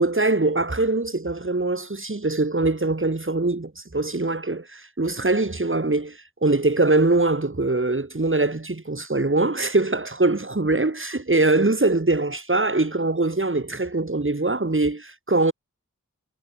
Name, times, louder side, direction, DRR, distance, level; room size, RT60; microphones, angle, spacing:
voice 1, 0.0-15.5, right 2 dB, 40° right, 6.2 m, -22 dB
wide cardioid pair, 65°, 31 cm